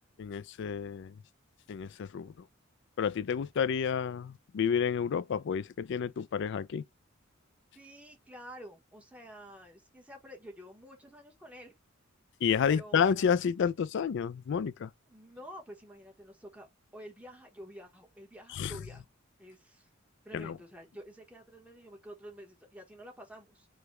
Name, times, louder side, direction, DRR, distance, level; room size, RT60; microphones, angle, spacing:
voice 1, 0.2-1.1 1.7-2.3 3.0-6.8 12.4-14.9 18.5-18.7 20.3-20.6, left 7 dB, 60° left, 0.3 m, -30 dB
voice 2, 7.7-11.7 12.7-13.2 15.1-16.7 16.9-19.1 19.4-19.9 20.2-23.7, equal, 5° right, 1.0 m, -49 dB
4.9 x 2.2 x 3.0 m
head